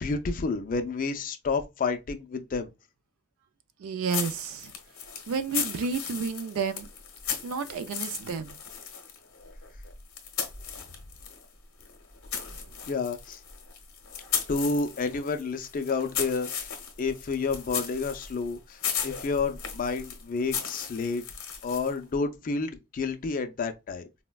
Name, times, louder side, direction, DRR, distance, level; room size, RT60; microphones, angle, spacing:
voice 1, 0.0-2.7 12.9-13.4 14.5-16.7 17.0-21.2 21.6-24.1, left 4 dB, 40° left, 0.4 m, -30 dB
voice 2, 3.8-4.7 5.3-6.9 7.4-8.6, right 5 dB, 65° right, 0.3 m, -31 dB
sound 1, 4.1-11.4 11.8-22.0, left 7 dB, 65° left, 0.7 m, -36 dB
4.1 x 2.1 x 2.2 m
head